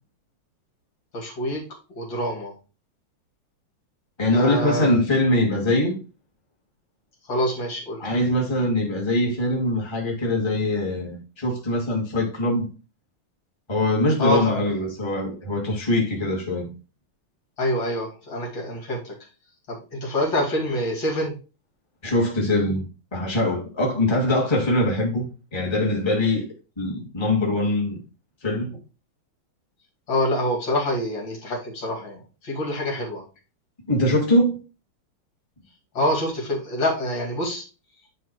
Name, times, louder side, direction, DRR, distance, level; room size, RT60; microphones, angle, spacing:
voice 1, 1.1-1.6 1.9-2.5 4.3-4.9 7.3-8.0 14.2-14.6 17.6-19.1 19.7-21.4 30.1-33.2 35.9-37.6, left 1 dB, 65° left, 3.0 m, -26 dB
voice 2, 4.2-6.0 8.0-12.7 13.7-16.7 22.0-26.5 26.8-28.0 28.4-28.7 33.9-34.6, left 1 dB, 15° left, 1.8 m, -23 dB
9.5 x 3.3 x 4.5 m
omnidirectional pair, 2.3 m